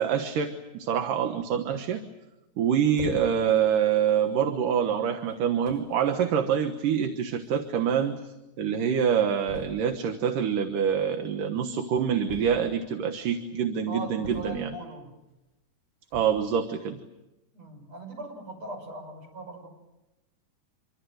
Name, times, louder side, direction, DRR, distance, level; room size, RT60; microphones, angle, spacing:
voice 1, 0.0-2.0 2.6-14.7 16.1-17.0, right 8 dB, 75° right, 6 dB, 2.9 m, -26 dB
sound 1, 3.0-3.6 4.3-4.5 5.3-5.4 5.7-6.0 7.2-7.3 7.5-7.6 7.8-7.9 9.5-10.0 12.3-12.9 14.2-14.9 16.0-16.5, left 4 dB, 35° left, 6.8 m, -41 dB
voice 2, 13.9-15.1 17.5-19.7, right 2 dB, 50° right, 3 dB, 7.4 m, -39 dB
27.0 x 24.5 x 7.9 m, 0.98 s
omnidirectional pair, 3.8 m